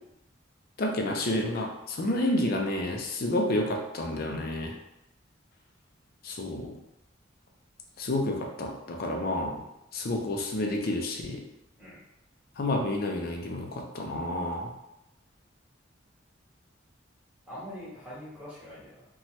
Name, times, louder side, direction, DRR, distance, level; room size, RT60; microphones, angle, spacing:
voice 1, 0.8-4.7 6.2-6.7 8.0-9.6 9.9-11.4 12.6-14.7, left 1 dB, 55° left, 2 dB, 0.5 m, -30 dB
voice 2, 2.0-2.3 11.8-12.0 17.5-19.0, equal, 5° right, -10 dB, 1.3 m, -44 dB
2.8 x 2.3 x 3.0 m, 0.88 s
head